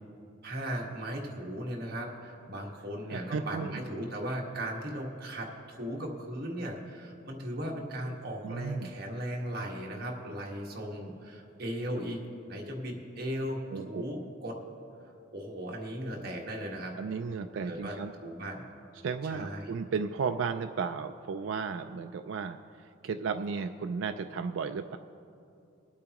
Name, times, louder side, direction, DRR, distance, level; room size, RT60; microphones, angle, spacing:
voice 1, 0.4-5.5 5.8-12.2 12.5-14.6 15.3-17.0 17.7-17.9 18.2-18.6 19.2-19.7, equal, 50° right, -1 dB, 1.6 m, -37 dB
voice 2, 3.1-3.8 8.4-8.9 13.7-14.0 17.0-18.1 19.0-25.0, right 5 dB, 70° right, 6 dB, 0.4 m, -34 dB
22.0 x 8.5 x 3.0 m, 2.6 s
head